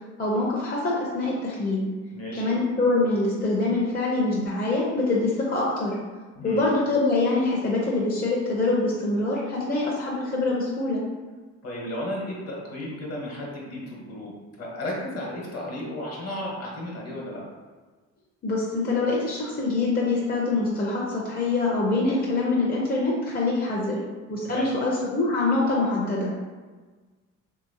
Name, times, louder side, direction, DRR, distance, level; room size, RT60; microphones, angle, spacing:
voice 1, 0.2-1.9 2.4-5.9 6.4-11.0 18.4-24.0 24.3-26.3, left 2 dB, 30° left, -4 dB, 0.6 m, -24 dB
voice 2, 2.1-2.5 6.4-6.6 11.6-17.4 24.4-24.7, left 1 dB, 55° left, -3 dB, 1.1 m, -34 dB
3.0 x 2.8 x 2.7 m, 1.3 s
cardioid pair, 90°, 30 cm